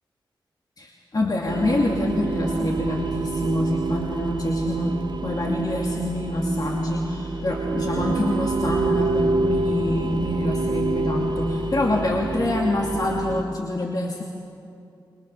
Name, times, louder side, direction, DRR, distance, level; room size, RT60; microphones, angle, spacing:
voice 1, 0.8-14.2, left 1 dB, 50° left, -1 dB, 2.5 m, -26 dB
sound 1, 1.5-13.4, right 3 dB, 60° right, 1.2 m, -27 dB
29.0 x 21.5 x 6.8 m, 2.6 s
cardioid pair, 45°, 9 cm